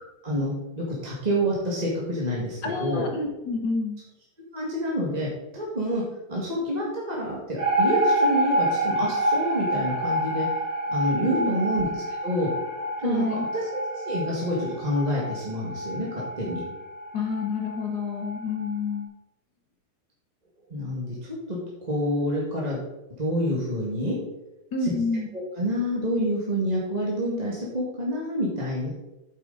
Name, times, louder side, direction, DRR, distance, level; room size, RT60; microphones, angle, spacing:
voice 1, 0.2-3.0 4.5-5.3 5.5-6.0 6.3-10.4 10.9-12.5 13.0-13.2 13.5-13.6 13.9-16.6 20.7-22.8 23.2-24.2 24.8-24.9 25.3-28.9, equal, 20° right, -4 dB, 1.9 m, -28 dB
voice 2, 2.6-4.0 11.2-11.6 13.0-13.4 17.1-19.1 24.7-25.3, left 3 dB, 55° left, 3 dB, 1.6 m, -28 dB
sound 1, 7.6-18.7, right 1 dB, 40° right, 3.7 m, -28 dB
8.9 x 8.3 x 4.0 m, 0.92 s
omnidirectional pair, 2.3 m